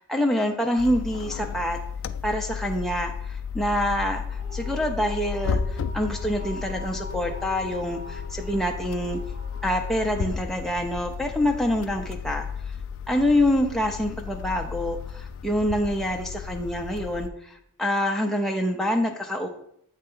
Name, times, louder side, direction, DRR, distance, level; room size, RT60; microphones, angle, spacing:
voice 1, 0.0-1.8 2.2-9.2 9.6-12.5 13.1-17.5 17.8-19.5, left 1 dB, ahead, 1 dB, 0.5 m, -26 dB
sound 1, 0.8-17.3, left 6 dB, 70° left, 0.3 m, -34 dB
sound 2, 4.3-11.3, left 2 dB, 75° right, 2.3 m, -44 dB
7.8 x 3.3 x 5.4 m, 0.73 s
head